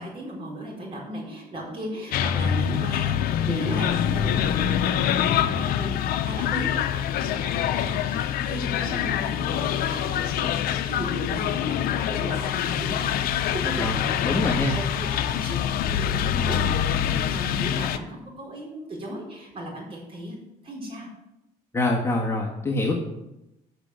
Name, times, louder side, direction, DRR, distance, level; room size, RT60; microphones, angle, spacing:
voice 1, 0.0-16.7 17.0-20.3 20.6-21.1, right 1 dB, 35° right, -2 dB, 4.5 m, -36 dB
sound 1, 2.1-18.0, left 9 dB, 70° left, 0.7 m, -25 dB
voice 2, 14.2-14.8 21.7-22.9, left 2 dB, 15° left, -2 dB, 1.6 m, -24 dB
8.1 x 6.4 x 7.8 m, 0.89 s
cardioid pair, 120°, 16 cm